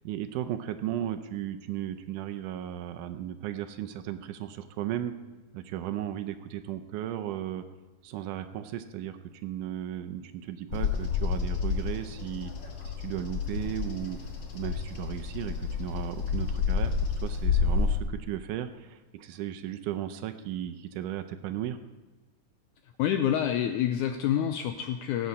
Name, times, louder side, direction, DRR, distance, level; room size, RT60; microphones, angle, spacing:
voice 1, 0.0-5.1 5.5-7.6 8.0-12.5 13.0-14.2 14.5-16.9 17.2-21.8, right 11 dB, 80° right, 9 dB, 2.0 m, -35 dB
Bird vocalization bird call bird song, 10.7-18.0, left 5 dB, 50° left, 1.5 m, -30 dB
voice 2, 23.0-25.3, left 10 dB, 80° left, 6 dB, 1.9 m, -27 dB
17.5 x 8.5 x 4.1 m, 1.2 s
omnidirectional pair, 3.9 m